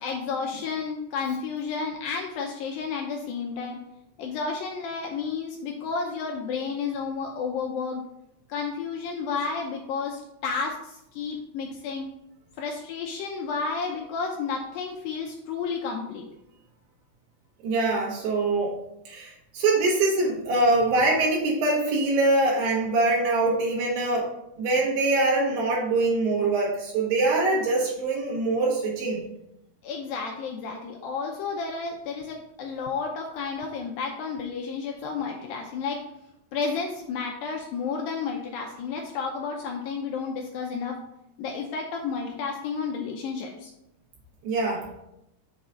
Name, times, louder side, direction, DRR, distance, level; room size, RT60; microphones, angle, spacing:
voice 1, 0.0-3.8 4.2-8.1 8.5-12.1 12.6-16.2 29.8-36.0 36.5-41.0 41.4-43.7, left 5 dB, 80° left, 1 dB, 2.1 m, -31 dB
voice 2, 17.6-18.8 19.1-24.3 24.6-29.2 44.4-44.9, right 2 dB, 80° right, -3 dB, 3.2 m, -23 dB
7.0 x 3.8 x 5.5 m, 0.82 s
omnidirectional pair, 4.7 m